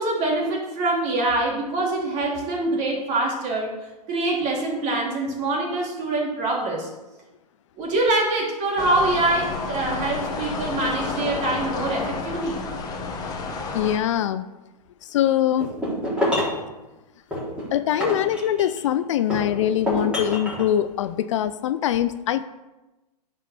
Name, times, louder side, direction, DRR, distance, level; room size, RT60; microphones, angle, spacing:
voice 1, 0.0-3.7 4.1-6.9 7.8-12.6, right 2 dB, 35° right, -1 dB, 3.1 m, -24 dB
sound 1, 8.8-14.0, left 4 dB, 20° left, 1.2 m, -30 dB
voice 2, 13.7-14.5 15.0-15.8 17.7-22.4, left 11 dB, 50° left, 12 dB, 0.5 m, -23 dB
sound 2, 15.6-16.6 17.3-18.9 19.3-20.7, left 1 dB, 5° right, 3.1 m, -26 dB
9.9 x 5.5 x 6.7 m, 1.1 s
hypercardioid pair, 150°, 21 cm